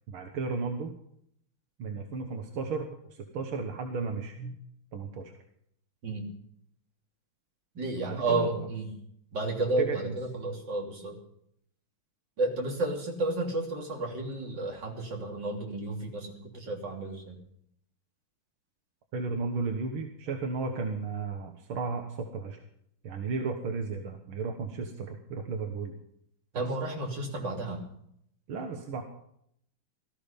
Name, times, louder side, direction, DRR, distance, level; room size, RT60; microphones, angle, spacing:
voice 1, 0.1-0.9 1.8-4.6 4.9-5.3 8.0-8.7 9.8-10.2 19.1-22.6 23.0-25.9 26.5-26.6 28.5-29.0, right 4 dB, 85° right, 4 dB, 2.2 m, -34 dB
voice 2, 7.8-8.9 9.3-11.2 12.4-17.4 26.5-27.8, right 2 dB, 60° right, 1 dB, 3.9 m, -32 dB
18.0 x 13.5 x 5.2 m, 0.71 s
omnidirectional pair, 2.2 m